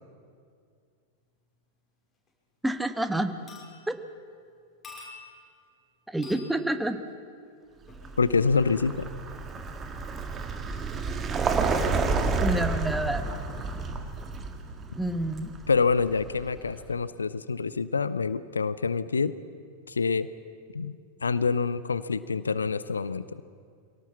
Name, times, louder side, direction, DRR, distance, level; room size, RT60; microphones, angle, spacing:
sound 1, 2.3-2.4 2.7-3.0 3.5-4.2 4.8-5.6 6.2-6.6 7.9-8.1 9.1-9.2, left 4 dB, 15° left, 6.2 m, -47 dB
voice 1, 2.6-3.3 3.9-4.0 6.1-7.0 12.4-13.2 14.9-15.5, right 1 dB, 5° right, 9 dB, 1.3 m, -28 dB
Vehicle, 7.9-16.7, right 4 dB, 25° right, 1.9 m, -30 dB
voice 2, 8.2-9.1 15.7-19.4 19.9-20.3 20.7-20.9 21.2-23.2, left 5 dB, 75° left, 16 dB, 0.6 m, -26 dB
25.0 x 18.0 x 7.2 m, 2.2 s
figure-of-eight pair, 90°, 0 cm